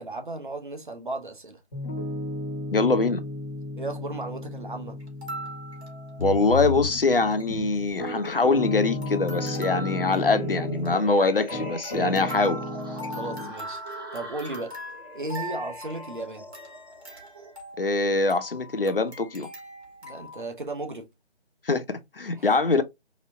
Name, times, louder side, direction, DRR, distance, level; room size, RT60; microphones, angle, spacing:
voice 1, 0.0-1.6 3.8-5.0 11.9-12.3 12.9-14.8 15.1-16.5 20.0-21.1 22.3-22.5, right 2 dB, 50° right, 0.8 m, -35 dB
Piano, 1.7-11.1 11.5-13.5, left 1 dB, 25° left, 1.4 m, -35 dB
voice 2, 2.7-3.2 6.2-12.6 17.8-19.5 21.6-22.8, left 3 dB, 55° left, 0.7 m, -23 dB
sound 1, 5.0-6.7 7.0-7.1 7.2-7.5 7.9-8.7 9.0-20.4, equal, 70° right, 1.8 m, -41 dB
sound 2, 6.2-8.1 8.5-17.5, left 2 dB, 20° right, 1.1 m, -38 dB
4.2 x 2.7 x 2.5 m
figure-of-eight pair, 155°, 33 cm